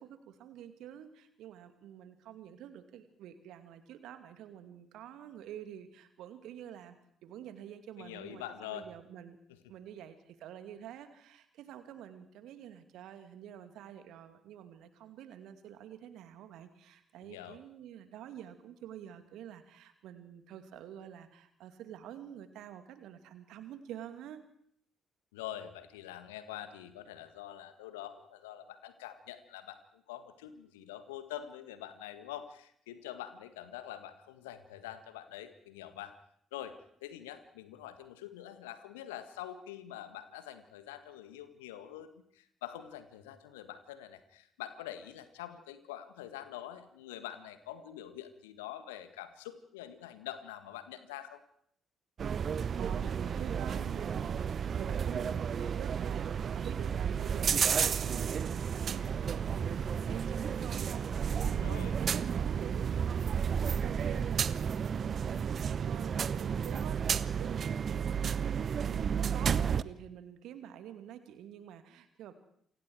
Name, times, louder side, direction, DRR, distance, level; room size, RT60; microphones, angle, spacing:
voice 1, 0.0-9.4 9.7-24.4 52.5-63.2 63.8-68.4 68.8-72.3, right 10 dB, 65° right, 9 dB, 2.5 m, -48 dB
voice 2, 8.0-8.9 17.2-17.6 25.3-36.1 36.5-51.4 61.4-61.9, left 11 dB, 75° left, 11 dB, 1.7 m, -45 dB
sound 1, 52.2-69.8, right 7 dB, 50° right, 0.8 m, -32 dB
28.5 x 24.5 x 4.8 m, 0.67 s
figure-of-eight pair, 45°, 0 cm